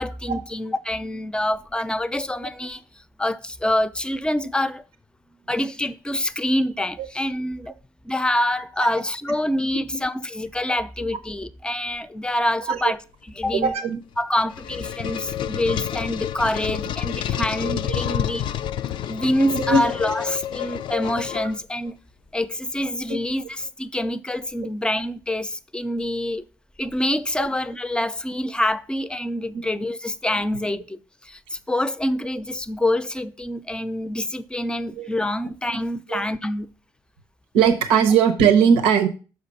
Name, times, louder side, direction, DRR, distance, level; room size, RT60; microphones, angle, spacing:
voice 1, 0.0-2.8 3.2-4.8 5.5-7.7 8.0-13.0 13.4-13.7 14.2-18.5 19.1-21.9 22.3-26.4 26.8-36.7, left 1 dB, 10° left, 0.6 m, -26 dB
voice 2, 13.5-14.0 17.8-18.0 19.5-19.8 27.4-27.5 29.5-29.7 34.9-35.1 36.1-36.3 37.5-39.1, right 6 dB, 85° right, 0.8 m, -19 dB
sound 1, 14.1-21.9, left 11 dB, 65° left, 0.4 m, -29 dB
6.4 x 5.0 x 5.5 m
supercardioid pair, 75°, 9 cm